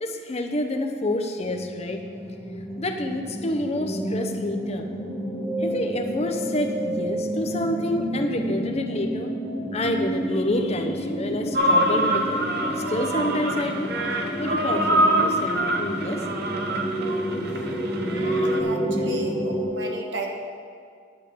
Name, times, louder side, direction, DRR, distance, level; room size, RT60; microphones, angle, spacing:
voice 1, 0.0-2.0 2.8-4.9 5.6-9.3 9.7-12.4 12.9-13.9 14.4-16.2, left 1 dB, 35° left, 5 dB, 0.7 m, -28 dB
sound 1, 1.4-19.6, equal, 15° left, 1.2 m, -29 dB
sound 2, 11.5-18.6, right 1 dB, 55° right, 0.8 m, -25 dB
voice 2, 18.0-20.3, right 2 dB, 75° right, 1 dB, 1.3 m, -34 dB
9.9 x 8.2 x 5.2 m, 2.2 s
head